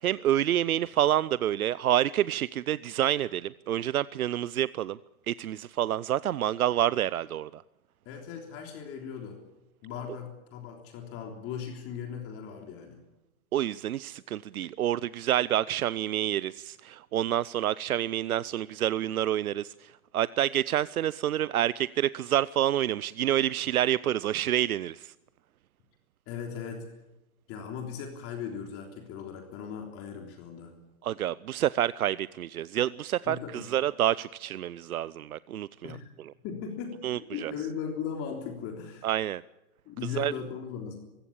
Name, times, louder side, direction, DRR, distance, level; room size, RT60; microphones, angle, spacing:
voice 1, 0.0-5.0 5.3-7.6 13.5-25.1 31.0-36.0 37.0-37.5 39.0-39.4 40.2-40.3, right 12 dB, 90° right, 0.6 m, -28 dB
voice 2, 8.1-9.4 9.8-13.0 26.3-26.9 27.5-30.7 33.3-33.7 35.8-36.1 36.4-39.1 39.9-41.0, left 7 dB, 30° left, 3.5 m, -38 dB
21.5 x 16.0 x 8.7 m
hypercardioid pair, 130°, 42 cm